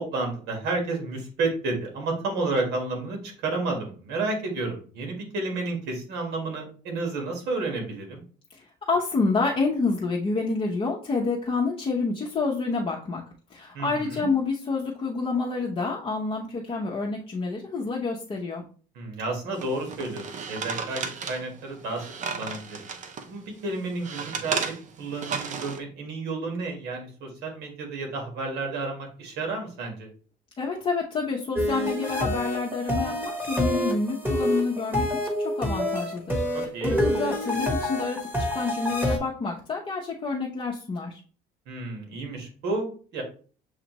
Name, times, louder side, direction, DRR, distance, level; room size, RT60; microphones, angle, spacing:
voice 1, 0.0-8.2 13.7-14.3 18.9-22.9 23.3-24.6 25.0-30.1 36.5-37.0 41.7-43.2, right 3 dB, 80° right, 2 dB, 1.5 m, -31 dB
voice 2, 8.5-13.2 13.5-18.6 30.6-35.1 35.4-41.2, left 4 dB, 35° left, -3 dB, 0.8 m, -28 dB
sound 1, 19.6-23.3 23.7-25.8, right 5 dB, 45° right, 0.6 m, -34 dB
sound 2, 31.6-39.2, equal, 10° right, 1.4 m, -27 dB
7.2 x 2.4 x 3.0 m, 0.41 s
cardioid pair, 110°, 17 cm